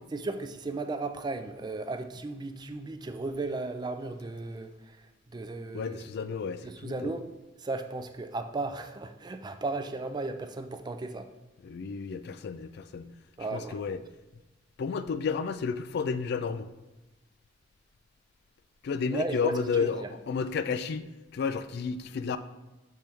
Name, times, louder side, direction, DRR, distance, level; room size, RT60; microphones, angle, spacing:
voice 1, 0.1-6.0 6.6-7.3 7.6-11.3 13.4-13.8 19.1-20.1, right 3 dB, 20° right, 0.3 m, -35 dB
voice 2, 5.7-7.1 11.6-13.1 13.5-14.0 14.8-16.7 18.8-22.4, left 5 dB, 60° left, 0.3 m, -32 dB
6.4 x 4.4 x 3.5 m
head